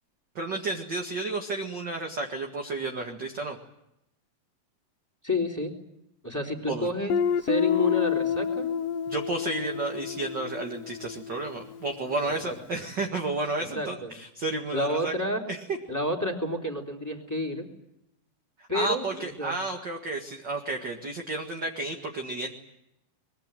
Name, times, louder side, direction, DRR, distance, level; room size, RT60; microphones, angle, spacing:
voice 1, 0.4-3.6 6.7-6.9 9.1-15.1 15.5-15.6 18.7-22.5, right 2 dB, 40° right, 3 dB, 1.9 m, -32 dB
voice 2, 5.2-5.7 6.2-8.7 12.4-12.8 13.7-14.1 14.7-15.4 15.9-17.7 18.7-19.5, left 1 dB, 5° left, 2 dB, 3.3 m, -30 dB
Guitar, 7.1-11.8, left 7 dB, 70° left, 2.7 m, -29 dB
23.5 x 22.5 x 9.1 m, 0.82 s
omnidirectional pair, 4.2 m